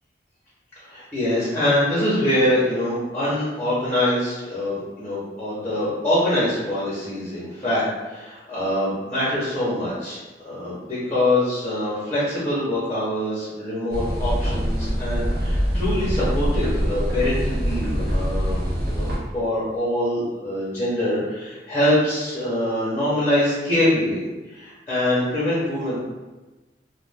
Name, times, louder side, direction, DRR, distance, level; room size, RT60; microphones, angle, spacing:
voice 1, 0.9-10.2 10.4-26.0, left 1 dB, 10° left, -9 dB, 0.9 m, -24 dB
sound 1, 13.9-19.2, equal, 55° right, 0.6 m, -24 dB
2.5 x 2.3 x 3.4 m, 1.1 s
head